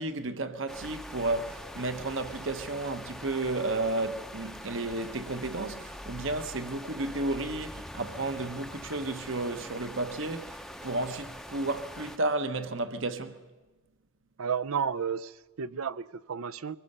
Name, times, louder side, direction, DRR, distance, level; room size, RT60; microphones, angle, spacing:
voice 1, 0.0-13.4, right 2 dB, 65° right, 1.2 m, -32 dB
sound 1, 0.7-12.2, equal, ahead, 0.6 m, -43 dB
voice 2, 14.4-16.8, right 6 dB, 85° right, 0.6 m, -32 dB
23.5 x 20.0 x 6.8 m
head